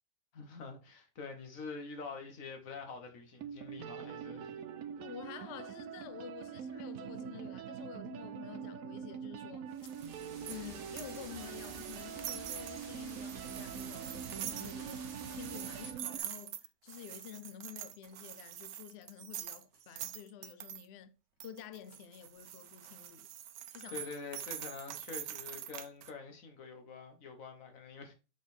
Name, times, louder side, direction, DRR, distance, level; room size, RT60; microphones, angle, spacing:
voice 1, 0.3-4.5 23.9-28.1, left 4 dB, 55° left, 1.6 m, -46 dB
sound 1, 2.9-3.0 3.4-16.2, right 8 dB, 65° right, 0.9 m, -44 dB
voice 2, 5.0-9.9 10.4-15.0 15.3-21.1 21.4-23.3 23.7-24.0, left 9 dB, 85° left, 0.5 m, -49 dB
sound 2, 9.7-15.9, right 5 dB, 50° right, 1.2 m, -50 dB
sound 3, 9.8-20.8 21.4-26.1, right 11 dB, 85° right, 1.3 m, -45 dB
5.9 x 4.3 x 4.3 m
omnidirectional pair, 1.8 m